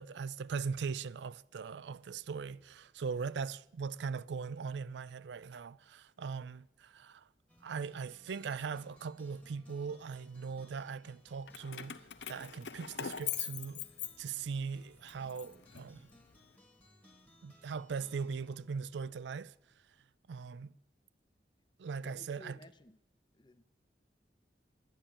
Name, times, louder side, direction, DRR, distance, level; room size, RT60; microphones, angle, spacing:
voice 1, 0.0-7.3 7.6-12.0 12.3-13.8 14.2-16.1 17.4-19.5 20.3-20.7 21.8-22.6, right 5 dB, 80° right, 0.4 m, -40 dB
sound 1, 7.5-19.8, left 1 dB, 10° left, 1.4 m, -64 dB
Keys jangling, 11.5-14.6 15.1-16.4, left 10 dB, 85° left, 0.7 m, -42 dB
voice 2, 22.0-23.0 23.3-23.6, left 2 dB, 25° left, 0.6 m, -55 dB
11.5 x 10.0 x 8.7 m
head